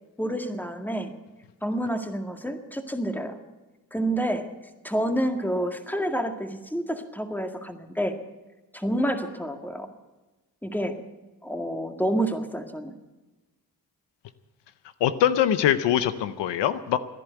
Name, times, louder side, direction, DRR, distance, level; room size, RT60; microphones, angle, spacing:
voice 1, 0.2-1.1 1.6-3.4 3.9-4.5 4.8-8.2 8.7-9.9 10.6-11.0 11.4-12.9, right 1 dB, 5° left, 5 dB, 1.9 m, -28 dB
voice 2, 15.0-17.0, left 10 dB, 90° left, 13 dB, 0.7 m, -23 dB
16.0 x 10.5 x 7.9 m, 1.1 s
cardioid pair, 50°, 41 cm